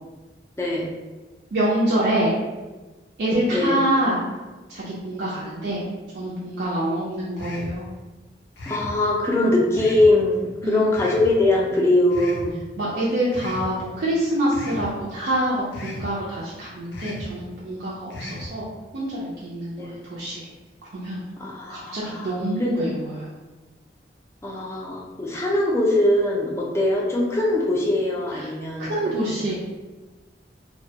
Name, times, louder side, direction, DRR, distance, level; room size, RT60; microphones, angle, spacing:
voice 1, 1.5-2.3 3.2-4.2 4.7-5.8 6.1-7.8 10.6-10.9 12.8-18.7 18.9-20.5 20.9-21.2 21.7-23.3 28.3-28.5 28.8-29.5, right 1 dB, 65° right, -7 dB, 0.4 m, -25 dB
sound 1, 7.4-7.8 8.6-9.0 9.7-10.1 10.9-11.3 12.1-12.5 13.3-13.7 14.5-14.9 15.7-16.1 16.9-17.3 18.1-18.5, left 1 dB, 80° left, 0.4 m, -35 dB
voice 2, 8.7-12.6 19.8-20.1 21.4-22.7 24.4-28.9 29.3-29.4, left 1 dB, 15° left, -3 dB, 0.4 m, -22 dB
2.2 x 2.1 x 2.7 m, 1.2 s
head